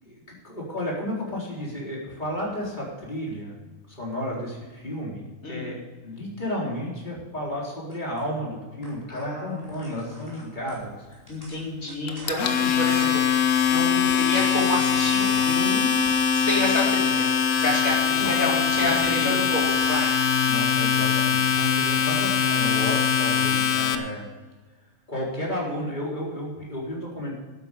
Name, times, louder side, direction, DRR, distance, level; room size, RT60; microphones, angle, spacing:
voice 1, 0.0-3.5 3.9-11.0 18.2-19.4 20.4-24.3 25.1-27.3, left 1 dB, 35° left, -4 dB, 4.2 m, -32 dB
voice 2, 5.4-5.7 9.1-9.9 11.3-17.3 17.6-20.1, left 2 dB, 85° left, -4 dB, 4.6 m, -29 dB
sound 1, 7.9-8.2 8.8-9.2 9.5-15.5 15.8-16.9 17.4-17.6 17.9-20.6 20.9-23.5, left 1 dB, 15° left, 4.9 m, -46 dB
Domestic sounds home sounds, 12.1-23.9, left 7 dB, 70° left, 1.3 m, -22 dB
12.0 x 9.6 x 6.8 m, 1.3 s
omnidirectional pair, 1.4 m